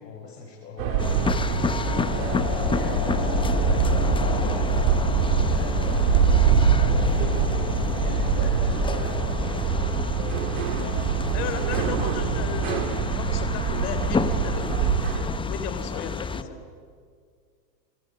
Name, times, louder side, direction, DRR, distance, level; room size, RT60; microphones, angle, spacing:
voice 1, 0.0-5.1 5.4-7.5 7.9-11.8 15.9-16.5, left 4 dB, 80° left, -3 dB, 6.8 m, -40 dB
sound 1, 0.8-15.2, right 7 dB, 55° right, 4.1 m, -25 dB
sound 2, 1.0-16.4, left 5 dB, 10° left, 0.8 m, -31 dB
sound 3, 1.4-10.5, left 5 dB, 45° left, 5.8 m, -30 dB
voice 2, 11.3-16.5, left 7 dB, 60° left, 9 dB, 3.8 m, -35 dB
28.0 x 24.0 x 7.8 m, 2.1 s
hypercardioid pair, 115°, 49 cm